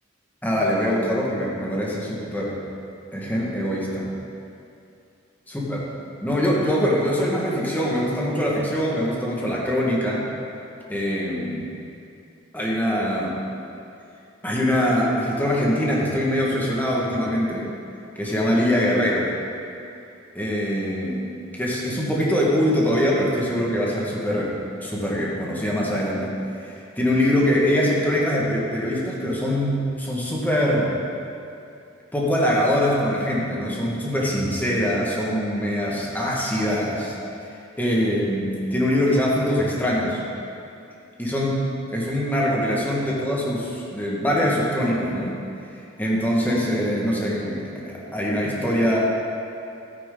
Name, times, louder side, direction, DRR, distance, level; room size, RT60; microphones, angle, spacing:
voice 1, 0.4-2.5 3.1-4.1 5.5-5.8 6.2-10.3 10.9-11.7 12.5-13.4 14.4-17.7 18.1-19.3 20.3-21.2 21.5-24.5 24.8-26.3 26.7-31.0 32.1-37.2 37.8-40.2 41.2-41.6 41.9-45.4 46.0-49.0, equal, 10° left, -5 dB, 1.7 m, -23 dB
13.5 x 9.5 x 3.9 m, 2.6 s
head